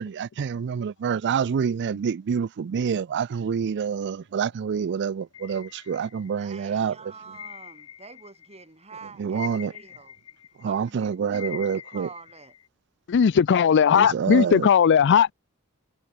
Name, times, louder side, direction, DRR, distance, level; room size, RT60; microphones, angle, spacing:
voice 1, 0.0-7.1 9.2-9.7 10.6-12.1 13.9-14.7, right 7 dB, 55° right, 0.4 m, -27 dB
sound 1, 5.3-6.6 7.3-8.6 8.9-12.7, left 9 dB, 75° left, 2.4 m, -43 dB
voice 2, 6.4-10.1 10.7-12.5, right 4 dB, 30° right, 3.8 m, -46 dB
voice 3, 13.1-15.3, left 7 dB, 55° left, 0.4 m, -18 dB
head